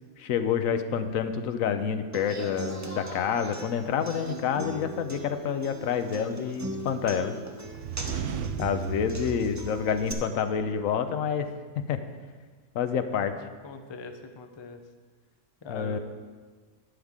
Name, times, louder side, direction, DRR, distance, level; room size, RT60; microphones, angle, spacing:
voice 1, 0.2-7.4 8.6-11.5 11.9-12.0 12.7-13.3 15.7-16.0, left 7 dB, 85° left, 9 dB, 1.1 m, -28 dB
Human voice / Acoustic guitar, 2.1-10.1, right 1 dB, 15° right, 0.6 m, -39 dB
sound 1, 7.6-10.6, right 8 dB, 70° right, 0.9 m, -35 dB
voice 2, 13.4-14.8 15.6-16.0, left 4 dB, 30° left, 6 dB, 0.5 m, -42 dB
11.5 x 9.7 x 3.7 m, 1.5 s
omnidirectional pair, 1.4 m